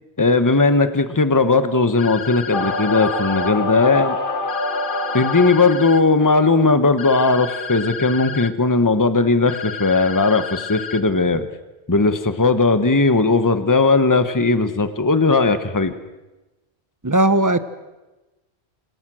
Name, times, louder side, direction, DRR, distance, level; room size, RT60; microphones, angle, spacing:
voice 1, 0.2-4.2 5.1-11.5 11.9-15.9, left 3 dB, 20° left, 10 dB, 1.2 m, -17 dB
sound 1, 2.0-3.5 4.5-6.0 7.0-8.5 9.5-11.0, left 6 dB, 85° left, 1.4 m, -32 dB
sound 2, 2.5-6.0, left 2 dB, 55° left, 1.9 m, -25 dB
voice 2, 17.0-17.6, right 1 dB, 20° right, 12 dB, 1.1 m, -16 dB
28.5 x 26.5 x 6.3 m, 1.1 s
omnidirectional pair, 1.1 m